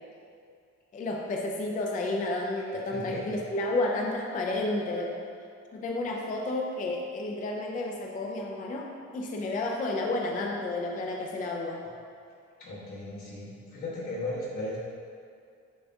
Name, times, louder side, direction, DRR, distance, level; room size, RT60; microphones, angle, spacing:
voice 1, 0.9-5.2 5.7-11.8, left 2 dB, 30° left, 0 dB, 0.3 m, -31 dB
voice 2, 2.7-3.4 12.6-14.8, left 1 dB, 75° left, -9 dB, 1.5 m, -37 dB
6.8 x 2.6 x 2.3 m, 2.3 s
cardioid pair, 90°, 30 cm